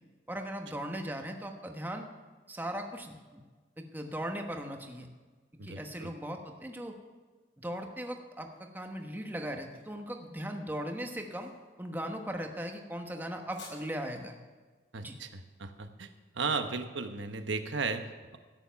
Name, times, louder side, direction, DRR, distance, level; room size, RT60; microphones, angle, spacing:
voice 1, 0.3-2.1 2.5-3.4 3.8-5.1 5.6-7.0 7.6-11.5 11.8-14.4 15.0-15.2, equal, 10° right, 3 dB, 1.1 m, -38 dB
voice 2, 5.6-6.1 14.9-16.1 16.3-18.4, right 4 dB, 75° right, 8 dB, 1.1 m, -35 dB
sound 1, 8.2-17.0, left 3 dB, 75° left, 4.6 m, -59 dB
14.0 x 9.9 x 5.8 m, 1.3 s
head